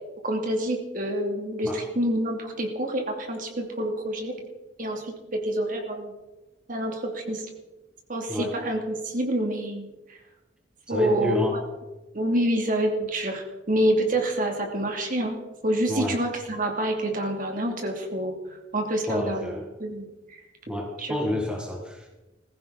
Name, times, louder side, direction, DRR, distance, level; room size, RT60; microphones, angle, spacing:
voice 1, 0.2-4.3 4.8-6.1 6.7-7.4 8.1-9.9 10.9-11.4 12.1-15.4 15.6-18.3 18.7-19.5 19.8-20.1 21.0-21.2, right 1 dB, 50° right, 2 dB, 2.7 m, -27 dB
voice 2, 10.9-11.6 15.9-16.2 19.1-19.6 20.7-22.1, left 1 dB, 5° right, -1 dB, 2.0 m, -29 dB
20.5 x 15.5 x 4.1 m, 1.1 s
head